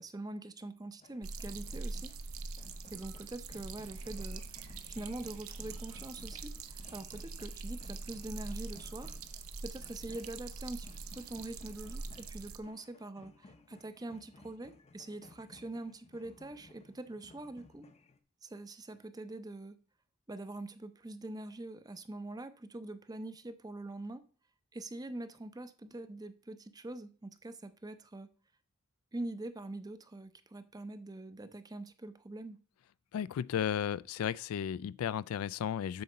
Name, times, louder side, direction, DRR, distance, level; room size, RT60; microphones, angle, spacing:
voice 1, 0.0-2.1 2.9-4.6 4.9-9.2 9.6-10.9 11.2-17.9 18.4-19.8 20.3-24.2 24.7-28.3 29.1-32.6, right 2 dB, 20° right, 0.5 m, -44 dB
sound 1, 1.0-18.2, left 2 dB, 30° left, 0.6 m, -59 dB
sound 2, 1.2-12.6, right 3 dB, 75° right, 0.7 m, -43 dB
voice 2, 33.1-36.0, left 9 dB, 80° left, 0.3 m, -34 dB
7.9 x 4.1 x 6.5 m
head